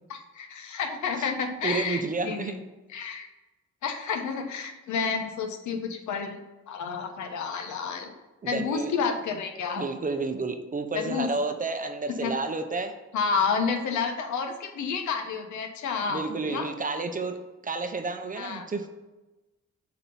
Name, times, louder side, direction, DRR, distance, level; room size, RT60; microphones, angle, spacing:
voice 1, 0.1-2.6 2.9-3.3 3.8-6.4 6.7-8.1 8.5-9.8 10.9-11.3 12.2-12.3 13.1-16.7 18.4-18.6, left 5 dB, 75° left, 4 dB, 1.0 m, -30 dB
voice 2, 1.6-2.6 8.4-8.9 9.8-13.0 16.1-17.4 17.6-18.9, right 3 dB, 25° right, 7 dB, 0.7 m, -31 dB
7.1 x 2.9 x 5.4 m, 1.1 s
cardioid pair, 90°, 30 cm